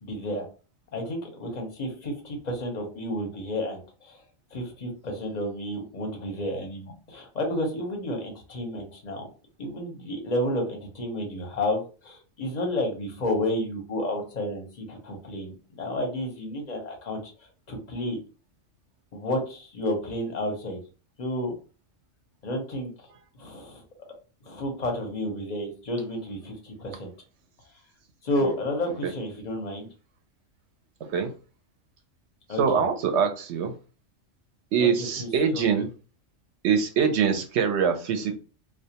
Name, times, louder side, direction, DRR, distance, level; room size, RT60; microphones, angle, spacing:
voice 1, 0.0-0.5 0.9-4.2 4.5-9.3 9.6-17.3 17.7-18.2 19.1-20.8 21.2-21.5 22.4-22.9 23.4-23.8 24.4-27.1 28.2-29.9 32.5-32.8 34.8-35.6, left 1 dB, 45° left, 2 dB, 0.6 m, -31 dB
voice 2, 32.6-33.7 34.7-35.9 36.6-38.3, right 6 dB, 70° right, 6 dB, 0.8 m, -24 dB
2.3 x 2.2 x 2.7 m, 0.35 s
omnidirectional pair, 1.3 m